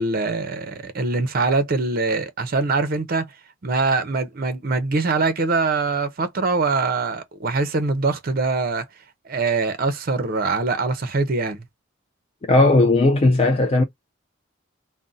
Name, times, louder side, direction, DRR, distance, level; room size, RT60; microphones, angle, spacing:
voice 1, 0.0-3.4 3.6-8.8 9.2-11.7, right 3 dB, 45° right, 0.5 m, -23 dB
voice 2, 12.5-13.8, left 2 dB, 30° left, 0.3 m, -16 dB
2.5 x 2.0 x 3.8 m
head